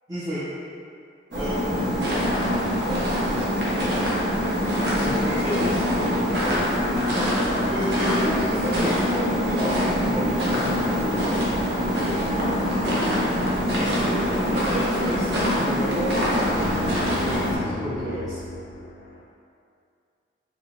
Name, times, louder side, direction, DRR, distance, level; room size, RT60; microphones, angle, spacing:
voice 1, 0.1-0.5 1.3-2.1 2.8-3.5 4.9-5.8 7.7-10.4 10.9-11.2 13.7-16.4 17.1-18.4, equal, 20° right, -10 dB, 0.4 m, -31 dB
sound 1, 1.3-17.6, equal, 80° right, 1.0 m, -25 dB
sound 2, 2.0-17.4, equal, 65° right, 0.7 m, -29 dB
sound 3, 5.6-19.3, left 1 dB, 75° left, 0.4 m, -35 dB
2.7 x 2.5 x 3.1 m, 2.4 s
head